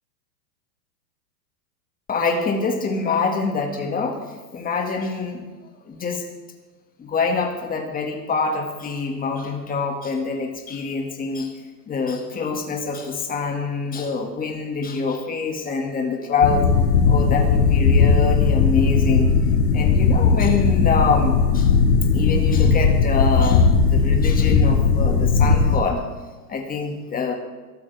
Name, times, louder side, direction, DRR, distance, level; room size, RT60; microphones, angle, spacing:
voice 1, 2.1-4.2 4.5-5.4 5.9-6.2 7.0-11.5 11.9-16.7 17.1-19.4 19.7-21.7 22.1-26.0 26.5-27.3, left 4 dB, 15° left, 3 dB, 2.1 m, -25 dB
sound 1, 16.4-25.8, left 5 dB, 70° left, 2.3 m, -17 dB
21.5 x 12.5 x 3.6 m, 1.3 s
hypercardioid pair, 135°, 49 cm